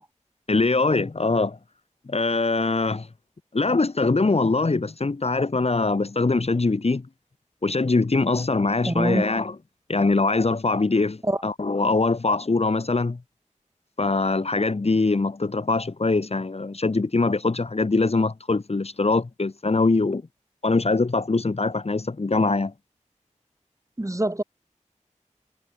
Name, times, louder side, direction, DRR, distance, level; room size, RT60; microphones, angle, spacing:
voice 1, 0.5-1.6 2.1-3.1 3.5-7.1 7.6-9.6 9.9-13.2 14.0-20.2 20.6-22.7, left 3 dB, 55° left, 1.5 m, -23 dB
voice 2, 8.9-9.2 11.3-11.4 24.0-24.4, right 1 dB, 25° right, 3.8 m, -24 dB
wide cardioid pair, 65°, 13 cm